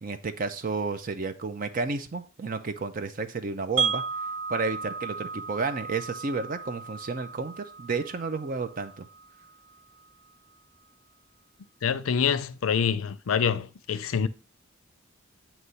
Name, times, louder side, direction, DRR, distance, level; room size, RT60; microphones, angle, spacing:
voice 1, 0.0-4.0 4.5-9.1, right 4 dB, 40° right, 0.5 m, -31 dB
Wind chime, 3.8-9.8, right 6 dB, 85° right, 1.1 m, -34 dB
voice 2, 11.8-14.3, left 7 dB, 90° left, 0.5 m, -26 dB
7.9 x 3.0 x 5.5 m
head